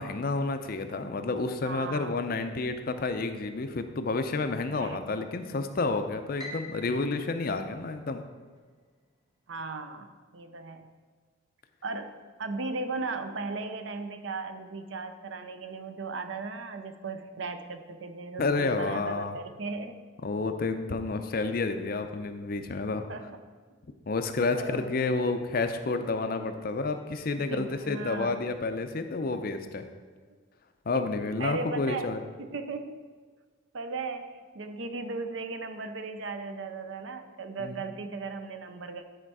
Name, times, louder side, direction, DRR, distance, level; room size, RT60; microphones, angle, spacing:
voice 1, 0.0-8.2 18.4-19.4 20.2-23.0 24.1-29.8 30.9-32.2 37.6-37.8, left 3 dB, 45° left, 8 dB, 0.5 m, -30 dB
voice 2, 1.6-2.2 4.7-5.0 9.5-10.9 11.8-12.1 12.4-20.0 23.1-23.4 24.5-24.9 26.4-26.5 27.5-28.3 30.9-31.0 31.4-32.1 32.4-33.0 33.7-39.0, right 3 dB, 60° right, 8 dB, 0.6 m, -37 dB
Piano, 6.4-8.6, left 1 dB, 20° right, 1.1 m, -45 dB
10.0 x 4.4 x 4.7 m, 1.5 s
head